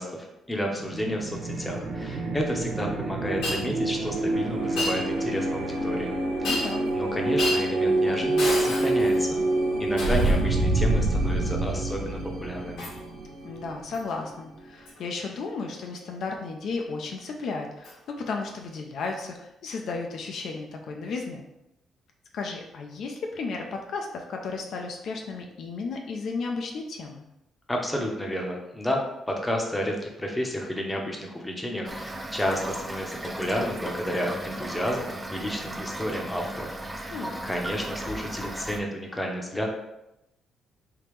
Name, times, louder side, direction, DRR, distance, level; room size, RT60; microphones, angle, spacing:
voice 1, 0.0-6.2 6.4-6.7 6.9-9.4 9.8-12.9 27.7-39.7, equal, 10° left, 0 dB, 0.7 m, -31 dB
sound 1, 0.8-14.3, right 2 dB, 80° right, 0.7 m, -27 dB
Shatter, 3.4-3.6 4.8-5.0 6.4-6.9 7.4-7.7 8.4-9.2 10.0-10.4 12.8-13.0 13.9-14.1 14.9-15.0 17.8-17.9 19.0-19.1, left 2 dB, 85° left, 1.2 m, -30 dB
voice 2, 6.4-6.9 13.4-21.5 22.3-27.2 37.1-37.5, left 4 dB, 70° left, 2 dB, 0.4 m, -34 dB
Toilet flush / Fill (with liquid), 31.9-38.8, right 1 dB, 15° right, 0.4 m, -36 dB
3.5 x 2.8 x 3.1 m, 0.88 s
cardioid pair, 90°, 0 cm